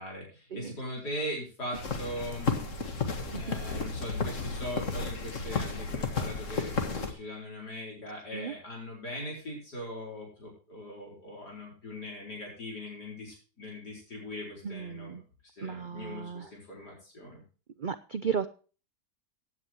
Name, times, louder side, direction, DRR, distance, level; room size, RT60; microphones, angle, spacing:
voice 1, 0.0-2.8 3.3-15.2 15.5-17.4, left 1 dB, 80° left, -2 dB, 5.1 m, -40 dB
sound 1, 1.7-7.1, left 4 dB, 50° left, 2.0 m, -33 dB
voice 2, 14.6-15.2 15.6-16.5 17.8-18.5, right 7 dB, 85° right, 12 dB, 0.4 m, -35 dB
16.0 x 9.7 x 3.0 m, 0.37 s
omnidirectional pair, 1.7 m